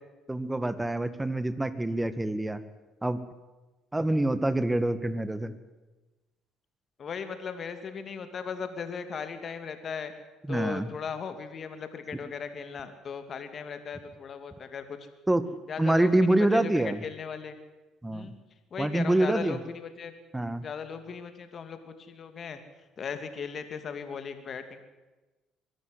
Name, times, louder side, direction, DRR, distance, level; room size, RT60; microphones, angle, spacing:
voice 1, 0.3-2.6 3.0-3.2 3.9-5.5 10.5-10.9 15.3-15.4 15.8-17.0 18.0-18.3 18.8-19.6 20.3-20.6, right 1 dB, 15° right, 13 dB, 1.8 m, -26 dB
voice 2, 7.0-10.1 10.5-15.0 15.7-17.6 18.1-18.4 18.7-20.1 20.6-22.6 23.0-24.8, left 6 dB, 50° left, 9 dB, 2.7 m, -37 dB
23.0 x 12.5 x 9.7 m, 1.2 s
hypercardioid pair, 55°, 0 cm